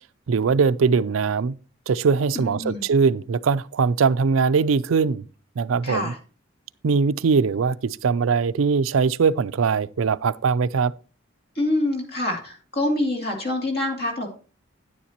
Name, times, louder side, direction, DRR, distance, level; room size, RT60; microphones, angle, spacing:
voice 1, 0.3-1.5 1.9-5.2 5.6-6.1 6.8-10.9, right 5 dB, 90° right, 0.4 m, -21 dB
voice 2, 2.3-2.8 5.8-6.2 11.6-14.3, left 1 dB, 55° left, 2.6 m, -26 dB
9.9 x 9.9 x 2.9 m
head